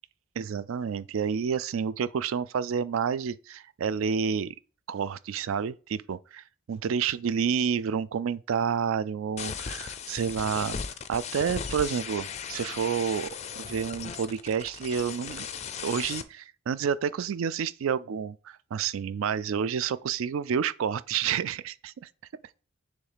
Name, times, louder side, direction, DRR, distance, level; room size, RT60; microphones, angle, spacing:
voice 1, 0.4-4.5 4.9-10.8 11.1-13.3 13.6-15.5 15.8-22.1, right 7 dB, 65° right, 0.3 m, -29 dB
sound 1, 9.4-16.2, left 6 dB, 30° left, 0.4 m, -37 dB
6.7 x 3.2 x 4.9 m
head